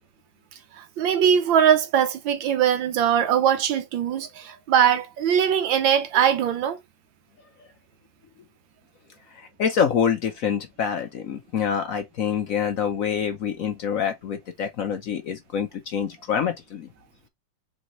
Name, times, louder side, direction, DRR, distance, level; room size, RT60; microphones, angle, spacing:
voice 1, 1.0-6.8, right 9 dB, 90° right, 1.6 m, -21 dB
voice 2, 9.3-16.9, left 7 dB, 65° left, 0.9 m, -26 dB
4.0 x 3.9 x 2.9 m
omnidirectional pair, 2.0 m